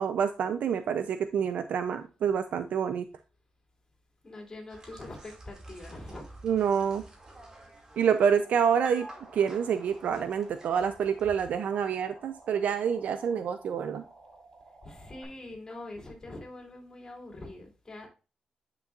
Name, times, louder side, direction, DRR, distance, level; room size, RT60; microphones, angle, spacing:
voice 1, 0.0-3.1 6.4-7.0 8.0-9.1 9.3-14.0, right 7 dB, 75° right, 9 dB, 0.5 m, -27 dB
voice 2, 4.2-6.3 14.8-18.1, left 2 dB, 25° left, 0 dB, 3.1 m, -44 dB
sound 1, 4.7-11.5, right 1 dB, 30° right, 2.3 m, -50 dB
sound 2, 8.2-15.2, right 2 dB, 45° right, 4.0 m, -54 dB
9.9 x 6.1 x 2.5 m, 0.34 s
wide cardioid pair, 130°, 3 cm